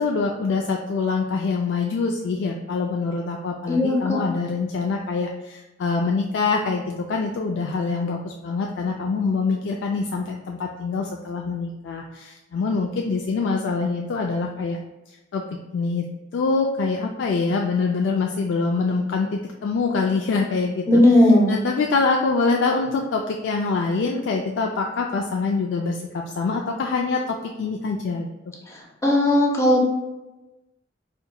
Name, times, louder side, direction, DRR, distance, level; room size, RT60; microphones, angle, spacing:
voice 1, 0.0-14.8 15.1-15.4 15.7-16.1 16.3-28.3, left 4 dB, 75° left, 1 dB, 0.3 m, -25 dB
voice 2, 3.7-4.2 20.9-21.5 29.0-29.8, left 1 dB, 15° left, -1 dB, 0.5 m, -16 dB
4.3 x 2.7 x 2.2 m, 1.0 s
head